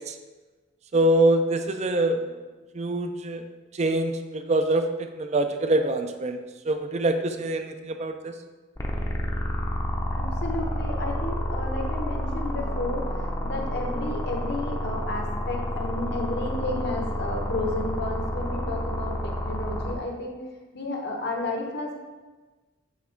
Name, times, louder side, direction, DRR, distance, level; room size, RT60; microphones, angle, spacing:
voice 1, 0.9-2.2 2.7-3.4 3.7-8.3, right 1 dB, 35° right, 7 dB, 0.4 m, -24 dB
sound 1, 8.8-19.9, equal, 20° left, 0.6 m, -29 dB
voice 2, 10.1-20.3 20.7-22.0, left 2 dB, 60° left, 1 dB, 1.1 m, -32 dB
7.2 x 3.5 x 4.4 m, 1.3 s
head